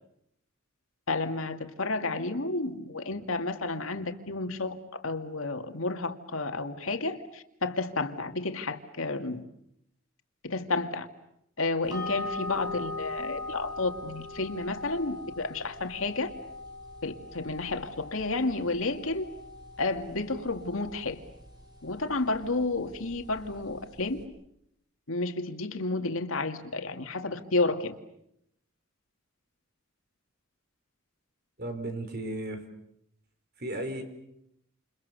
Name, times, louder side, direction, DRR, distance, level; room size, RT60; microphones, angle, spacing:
voice 1, 1.1-9.4 10.4-11.1 11.6-16.3 17.0-19.3 19.8-21.2 21.8-24.2 25.1-27.9, left 3 dB, 90° left, 6 dB, 2.3 m, -31 dB
sound 1, 11.9-24.2, left 2 dB, 20° right, 5.3 m, -41 dB
voice 2, 31.6-32.6 33.6-34.0, right 1 dB, 50° right, 7 dB, 4.6 m, -34 dB
29.0 x 29.0 x 6.9 m, 0.78 s
head